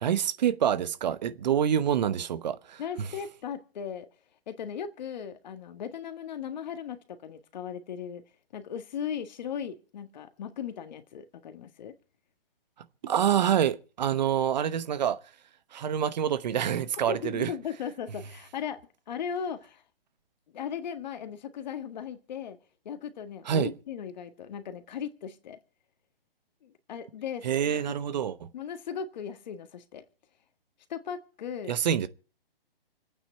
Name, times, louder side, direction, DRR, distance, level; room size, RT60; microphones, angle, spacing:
voice 1, 0.0-3.1 13.0-15.2 15.7-17.5 23.4-23.7 27.4-28.5 31.7-32.1, right 9 dB, 45° right, 0.9 m, -27 dB
voice 2, 2.8-4.1 4.5-8.2 8.5-11.9 17.1-18.8 19.1-19.8 20.5-22.6 22.8-25.6 26.6-27.8 28.5-30.0 30.9-31.7, left 8 dB, 45° left, 1.7 m, -37 dB
26.5 x 9.0 x 4.5 m
hypercardioid pair, 140°, 30 cm